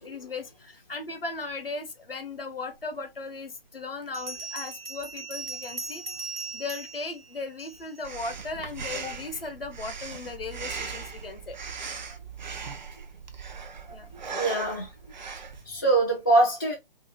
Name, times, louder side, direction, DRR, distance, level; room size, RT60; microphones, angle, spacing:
voice 1, 0.0-6.0 6.5-11.6 13.9-14.1, left 3 dB, 75° left, 0.7 m, -37 dB
Bell, 2.9-3.0 4.1-8.0, right 4 dB, 85° right, 0.8 m, -39 dB
Breathing, 8.0-15.7, right 5 dB, 50° right, 0.5 m, -39 dB
voice 2, 14.3-14.9 15.7-16.7, right 2 dB, 25° left, 0.4 m, -23 dB
2.8 x 2.7 x 2.7 m
figure-of-eight pair, 140°, 29 cm